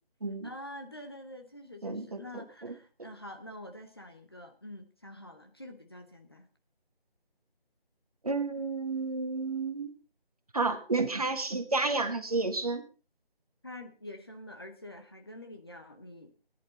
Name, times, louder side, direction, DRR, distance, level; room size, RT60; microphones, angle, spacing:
voice 1, 0.4-6.5 13.6-16.3, left 1 dB, 25° left, 5 dB, 0.9 m, -46 dB
voice 2, 1.8-2.7 3.0-3.1 8.2-9.9 10.5-12.8, right 3 dB, 40° right, 8 dB, 1.5 m, -31 dB
18.0 x 10.5 x 4.1 m, 0.35 s
figure-of-eight pair, 170°, 30 cm